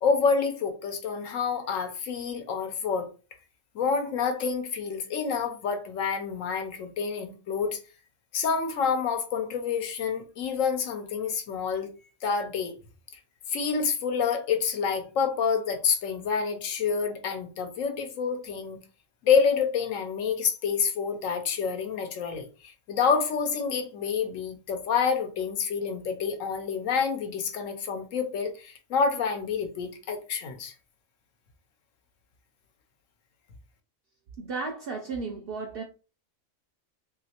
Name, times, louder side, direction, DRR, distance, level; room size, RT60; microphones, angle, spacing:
voice 1, 0.0-3.1 3.7-7.8 8.3-11.9 12.2-12.8 13.5-18.8 19.2-30.7, left 6 dB, 75° left, 1.0 m, -28 dB
voice 2, 34.4-35.8, right 4 dB, 65° right, 0.6 m, -34 dB
3.0 x 2.8 x 2.8 m
omnidirectional pair, 1.4 m